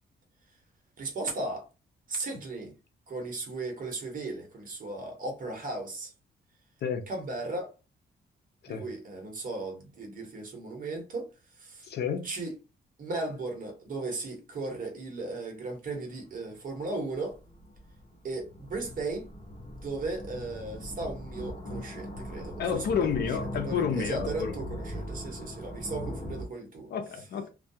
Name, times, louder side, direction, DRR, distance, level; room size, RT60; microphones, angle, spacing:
voice 1, 1.0-1.6 2.1-2.7 3.1-6.1 7.1-7.7 8.7-11.3 11.6-11.9 12.2-12.5 13.0-17.4 18.2-19.3 19.7-26.9, right 3 dB, 50° right, 1.0 m, -36 dB
voice 2, 11.8-12.2 22.6-24.6 26.9-27.5, left 7 dB, 65° left, 0.5 m, -30 dB
sound 1, 16.2-16.3 17.0-26.5, equal, 35° left, 0.8 m, -40 dB
2.3 x 2.2 x 2.7 m
cardioid pair, 135°, 18 cm